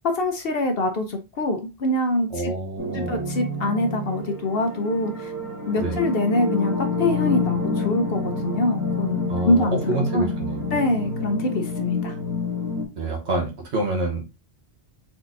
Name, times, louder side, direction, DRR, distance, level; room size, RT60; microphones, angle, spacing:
voice 1, 0.1-2.5 2.9-5.3 5.7-10.3 10.7-12.1, left 1 dB, 60° left, 5 dB, 0.9 m, -24 dB
voice 2, 2.3-3.3 5.8-6.0 9.3-10.7 13.0-14.3, right 2 dB, 80° right, 1 dB, 1.3 m, -27 dB
sound 1, 2.8-12.8, left 3 dB, 15° right, 1.1 m, -28 dB
4.4 x 3.9 x 2.5 m, 0.25 s
omnidirectional pair, 1.1 m